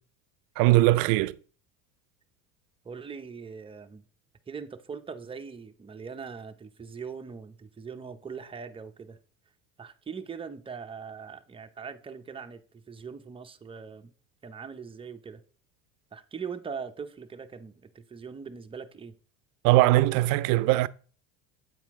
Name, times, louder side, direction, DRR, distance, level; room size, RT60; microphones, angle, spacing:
voice 1, 0.6-1.4 19.6-20.9, right 18 dB, 65° right, 0.5 m, -21 dB
voice 2, 2.8-4.0 4.5-9.2 9.8-14.1 14.4-15.4 16.1-19.2, right 6 dB, 15° right, 0.7 m, -41 dB
8.3 x 4.3 x 3.6 m
supercardioid pair, 100°, 37 cm